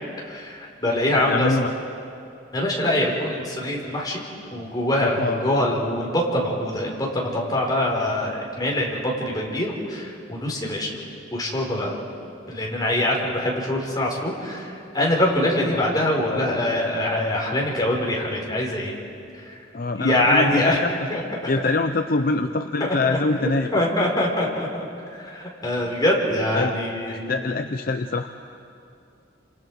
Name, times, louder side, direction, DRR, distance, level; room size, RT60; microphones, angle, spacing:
voice 1, 0.2-1.5 2.5-4.2 4.5-11.0 11.3-12.0 12.5-19.0 19.4-19.5 19.9-20.8 21.1-21.2 22.8-23.1 23.4-24.9 25.2-27.4, left 1 dB, 20° left, -2 dB, 4.4 m, -24 dB
voice 2, 1.1-1.7 5.2-5.5 15.7-15.8 16.3-16.4 19.7-20.9 21.5-23.8 26.5-26.7 27.1-28.3, left 3 dB, 50° left, 7 dB, 0.7 m, -24 dB
29.0 x 27.0 x 4.8 m, 2.5 s
head